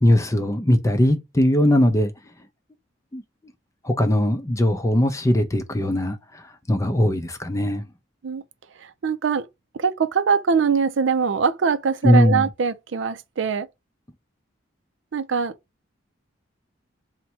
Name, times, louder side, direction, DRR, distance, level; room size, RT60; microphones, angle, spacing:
voice 1, 0.0-2.1 3.1-3.2 3.8-6.2 6.7-7.8 12.0-12.4, left 1 dB, 15° left, 0.5 m, -19 dB
voice 2, 8.8-9.5 9.7-13.7 15.1-15.5, right 5 dB, 70° right, 0.4 m, -22 dB
4.1 x 2.2 x 4.3 m
head